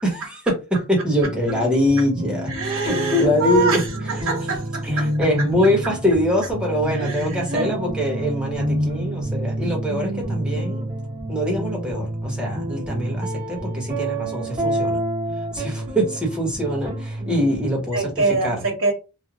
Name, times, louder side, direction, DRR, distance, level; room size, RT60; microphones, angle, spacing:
voice 1, 0.0-3.8 4.1-4.2 4.8-10.9 11.3-15.0 15.5-18.1 18.4-18.6, left 1 dB, 5° right, 1.2 m, -23 dB
sound 1, 1.0-17.7, right 1 dB, 30° right, 1.6 m, -28 dB
voice 2, 2.5-5.1 6.9-7.7 17.9-18.9, right 4 dB, 65° right, 1.3 m, -24 dB
3.3 x 2.4 x 2.4 m
head